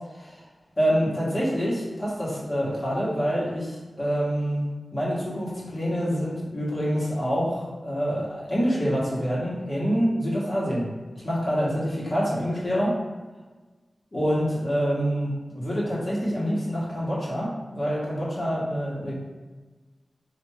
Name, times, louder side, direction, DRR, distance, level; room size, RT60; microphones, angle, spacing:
voice 1, 0.8-4.6 4.9-10.9 11.2-13.0 14.1-19.1, equal, 40° left, -6 dB, 1.1 m, -26 dB
3.5 x 2.5 x 3.1 m, 1.3 s
wide cardioid pair, 110°, 0 cm